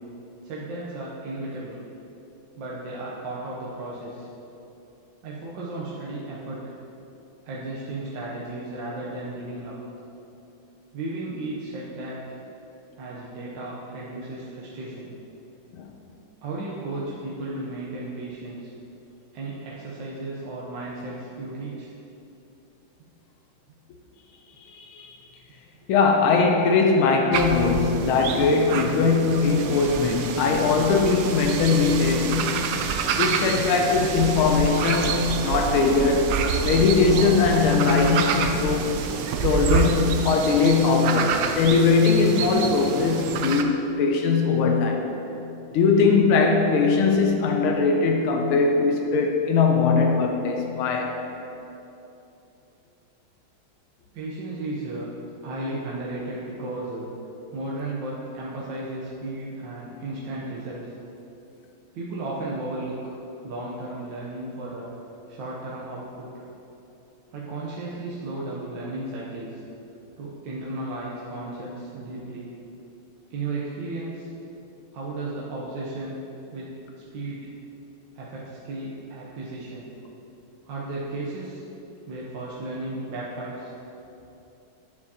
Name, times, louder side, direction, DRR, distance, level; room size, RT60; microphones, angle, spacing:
voice 1, 0.4-1.8 2.6-4.3 5.2-6.8 7.4-9.8 10.9-12.4 13.0-15.1 16.4-18.7 19.3-21.9 54.1-55.1 55.4-57.1 57.5-60.9 61.9-63.2 63.4-64.9 65.3-66.4 67.3-69.6 70.2-72.5 73.3-74.3 74.9-76.2 76.5-76.7 77.1-77.5 78.1-79.9 80.6-81.6 82.1-83.7, right 2 dB, 70° right, -6 dB, 1.4 m, -34 dB
voice 2, 24.7-25.2 25.9-32.7 33.2-36.3 36.6-38.9 39.4-45.0 45.7-51.2, left 4 dB, 85° left, 2 dB, 1.5 m, -20 dB
sound 1, 27.3-43.6, right 6 dB, 85° right, 0.8 m, -28 dB
9.2 x 7.2 x 2.8 m, 2.9 s
omnidirectional pair, 2.2 m